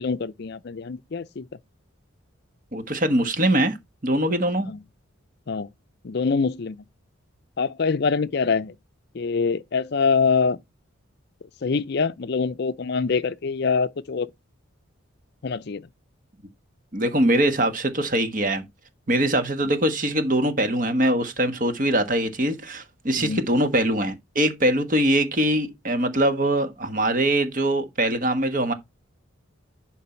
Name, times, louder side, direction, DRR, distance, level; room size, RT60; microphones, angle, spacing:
voice 1, 0.0-1.5 4.7-4.8 5.5-5.7 6.0-6.8 7.6-8.7 9.1-10.6 11.6-14.3 15.4-15.8 23.2-23.4, left 5 dB, 50° left, 0.5 m, -24 dB
voice 2, 2.7-3.8 4.0-4.7 16.9-18.6 19.1-28.7, right 1 dB, 40° right, 1.4 m, -22 dB
11.0 x 4.7 x 4.4 m
head